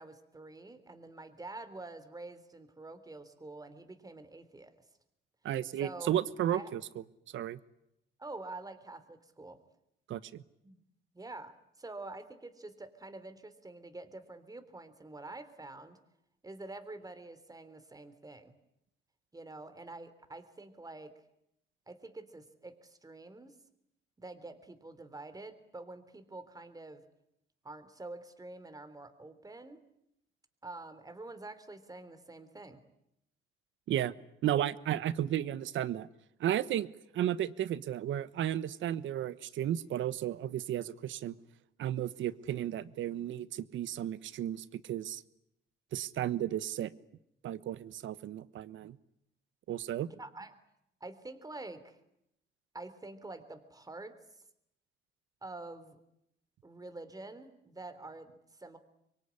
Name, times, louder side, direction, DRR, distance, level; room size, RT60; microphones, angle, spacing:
voice 1, 0.0-4.7 5.8-6.1 6.5-6.7 8.2-9.6 10.6-10.8 11.1-16.0 16.4-18.5 19.3-21.1 21.9-23.5 24.2-27.0 27.6-29.8 30.6-32.8 50.1-50.5 51.0-52.0 52.7-54.1 55.4-56.0 56.6-58.8, right 2 dB, 20° right, 10 dB, 3.4 m, -47 dB
voice 2, 5.4-7.0 7.3-7.6 10.1-10.4 33.9-34.1 34.4-36.1 36.4-36.9 37.1-41.3 41.8-45.2 45.9-46.9 47.4-49.0 49.7-50.1, right 11 dB, 75° right, 16 dB, 1.2 m, -33 dB
25.5 x 23.0 x 9.8 m, 0.80 s
cardioid pair, 90°, 20 cm